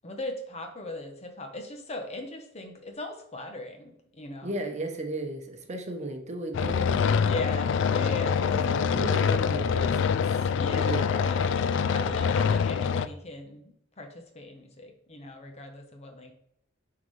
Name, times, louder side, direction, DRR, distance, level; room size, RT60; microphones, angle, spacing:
voice 1, 0.0-4.6 7.1-8.5 10.5-11.6 11.9-16.3, left 2 dB, 35° left, 5 dB, 0.9 m, -39 dB
voice 2, 4.4-7.1 7.9-10.2 10.7-11.3, right 2 dB, 35° right, 4 dB, 0.8 m, -36 dB
sound 1, 6.5-13.1, left 6 dB, 65° left, 0.3 m, -25 dB
9.4 x 3.8 x 3.2 m, 0.74 s
head